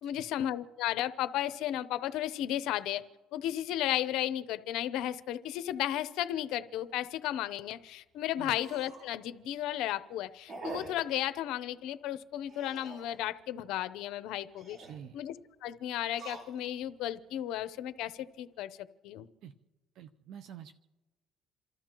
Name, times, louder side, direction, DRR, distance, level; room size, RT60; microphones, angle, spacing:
voice 1, 0.0-3.0 3.3-14.8 15.1-18.7 19.0-19.3, left 12 dB, 75° left, 14 dB, 0.7 m, -34 dB
sound 1, 6.8-6.9 7.4-7.5 7.7-7.8 8.4-9.1 9.6-9.9 10.5-11.1 12.5-13.2 14.4-15.0 16.0-16.9 17.5-18.0, right 3 dB, 45° right, 5.4 m, -45 dB
voice 2, 14.8-15.2 19.4-19.5 19.9-20.8, right 9 dB, 70° right, 8 dB, 0.6 m, -47 dB
28.5 x 13.5 x 3.0 m, 1.2 s
cardioid pair, 100°, 0 cm